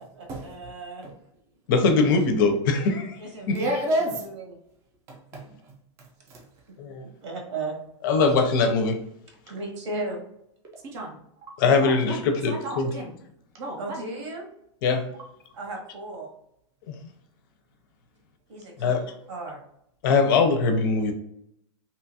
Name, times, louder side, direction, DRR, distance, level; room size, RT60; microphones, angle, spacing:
voice 1, 0.2-1.0 3.2-3.8 4.1-4.6 7.2-7.7 9.5-10.2 13.8-14.4 15.5-16.3 18.5-19.6, right 2 dB, 75° right, 1 dB, 1.1 m, -35 dB
voice 2, 1.7-3.2 3.5-3.6 6.8-7.0 8.0-9.0 11.6-12.9 14.8-15.0 16.9-17.0 18.8-19.0 20.0-21.1, left 4 dB, 45° left, 5 dB, 0.5 m, -21 dB
voice 3, 3.5-4.1 5.1-5.5 10.9-11.1 11.8-13.1 13.6-14.1, right 1 dB, 20° right, -1 dB, 0.4 m, -30 dB
2.8 x 2.3 x 2.7 m, 0.75 s
supercardioid pair, 170°, 15 cm